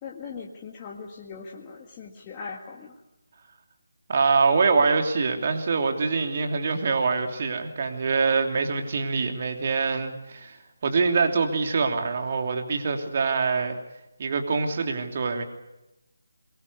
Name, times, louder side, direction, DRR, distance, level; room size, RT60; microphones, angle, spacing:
voice 1, 0.0-3.0, left 5 dB, 20° left, -1 dB, 1.9 m, -40 dB
voice 2, 4.1-13.8 14.2-15.4, right 4 dB, 40° right, 4 dB, 3.1 m, -24 dB
23.5 x 22.0 x 8.2 m, 0.93 s
figure-of-eight pair, 155°, 0 cm